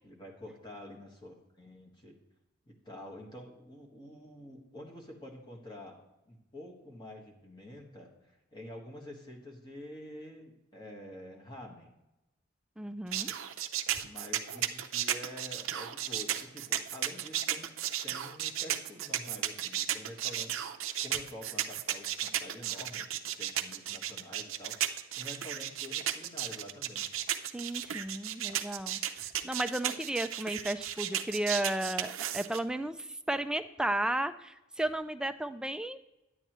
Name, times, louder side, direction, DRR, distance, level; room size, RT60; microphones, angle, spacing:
voice 1, 0.0-2.2 2.7-11.9 14.0-17.7 18.0-27.1, left 1 dB, 20° left, -1 dB, 1.5 m, -48 dB
voice 2, 12.8-13.3 27.5-36.0, right 1 dB, 5° right, 9 dB, 0.3 m, -34 dB
sound 1, 13.1-32.6, right 11 dB, 75° right, 0.5 m, -34 dB
10.0 x 8.6 x 3.0 m, 0.95 s
head